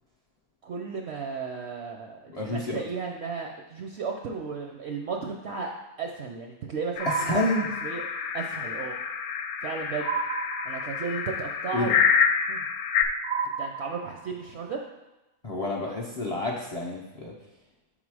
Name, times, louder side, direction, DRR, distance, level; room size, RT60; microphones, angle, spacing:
voice 1, 0.6-2.2 2.5-5.7 6.0-7.5 7.8-8.0 8.3-9.0 9.6-10.1 10.6-11.9 12.5-12.6 13.6-14.8, right 5 dB, 65° right, 2 dB, 0.7 m, -34 dB
voice 2, 2.3-2.8 7.3-7.7 11.7-12.0 15.4-17.3, left 1 dB, 50° left, -3 dB, 0.4 m, -29 dB
sound 1, 7.0-13.0, left 6 dB, 75° left, 1.0 m, -28 dB
sound 2, 7.0-8.2 10.0-11.2 13.2-14.5, right 5 dB, 80° right, 1.0 m, -32 dB
5.7 x 4.0 x 4.7 m, 0.99 s
omnidirectional pair, 1.5 m